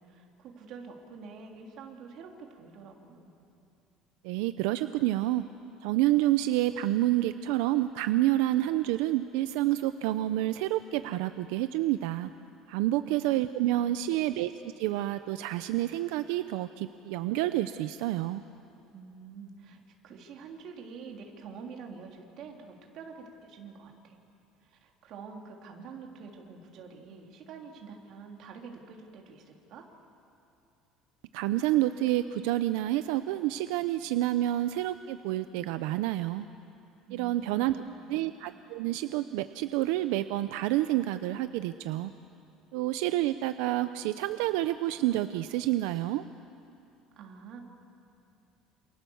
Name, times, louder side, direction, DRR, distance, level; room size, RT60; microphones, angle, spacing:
voice 1, 0.0-3.3 12.9-13.3 13.7-14.2 18.9-24.2 24.6-29.9 37.1-38.2 47.2-47.6, right 5 dB, 45° right, 1 dB, 3.4 m, -47 dB
voice 2, 4.2-5.4 5.8-12.3 12.7-14.5 14.8-18.4 31.3-36.5 37.1-37.8 38.1-42.1 42.7-46.2, right 15 dB, 85° right, 11 dB, 0.7 m, -28 dB
28.0 x 28.0 x 7.2 m, 2.7 s
cardioid pair, 165°, 0 cm